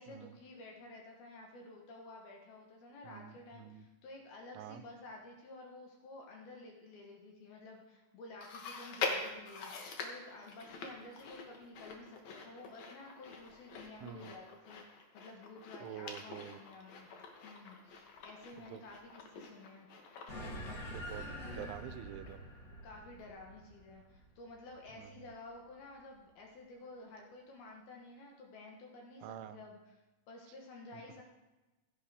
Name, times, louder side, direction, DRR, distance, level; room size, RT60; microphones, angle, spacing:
voice 1, 0.0-9.7 10.0-17.1 17.4-19.9 22.8-29.9 30.3-31.2, left 2 dB, 65° left, 0 dB, 2.6 m, -52 dB
voice 2, 3.0-3.8 4.6-4.8 14.0-14.3 15.8-16.6 18.7-18.8 20.8-22.4 24.9-25.3 29.2-29.6 30.9-31.0, right 11 dB, 85° right, 11 dB, 3.1 m, -47 dB
Chewing mastication, 8.4-21.9 22.3-22.4 23.2-23.3, left 4 dB, 90° left, 1.6 m, -45 dB
sound 1, 20.3-25.1, equal, 50° left, 4.0 m, -46 dB
15.5 x 11.0 x 3.5 m, 1.1 s
omnidirectional pair, 5.4 m